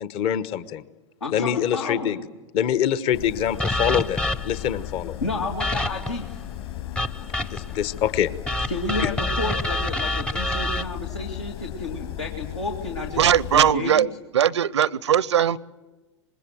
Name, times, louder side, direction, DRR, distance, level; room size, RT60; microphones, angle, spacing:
voice 1, 0.0-0.8 1.3-2.2 2.5-5.2 7.5-8.3 9.0-9.1, left 9 dB, 40° left, 1.1 m, -25 dB
voice 2, 1.2-2.3 5.2-6.4 8.7-13.3 13.5-14.1, left 3 dB, 80° left, 2.4 m, -31 dB
sound 1, 3.1-13.7, left 12 dB, 55° left, 5.1 m, -36 dB
sound 2, 3.6-4.7 5.6-6.2 7.0-7.8 8.5-10.8, left 1 dB, 5° left, 0.8 m, -27 dB
voice 3, 13.2-14.1 14.3-15.6, right 10 dB, 70° right, 0.7 m, -19 dB
25.5 x 21.0 x 7.7 m
figure-of-eight pair, 95°, 15 cm